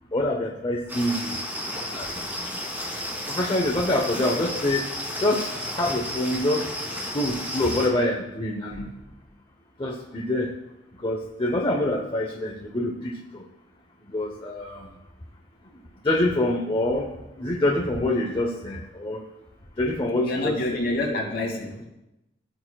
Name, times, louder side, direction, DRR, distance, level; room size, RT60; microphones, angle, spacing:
voice 1, 0.1-1.4 1.9-2.1 3.3-4.9 5.2-5.5 5.8-6.7 7.1-8.9 9.8-10.5 11.0-13.4 14.1-14.9 16.0-17.1 17.4-19.2 19.8-20.6, left 1 dB, 30° left, 0 dB, 0.8 m, -25 dB
sound 1, 0.9-7.9, equal, 10° right, 2.4 m, -32 dB
voice 2, 20.2-21.9, left 1 dB, 60° left, -1 dB, 2.5 m, -27 dB
15.0 x 9.1 x 2.3 m, 0.94 s
head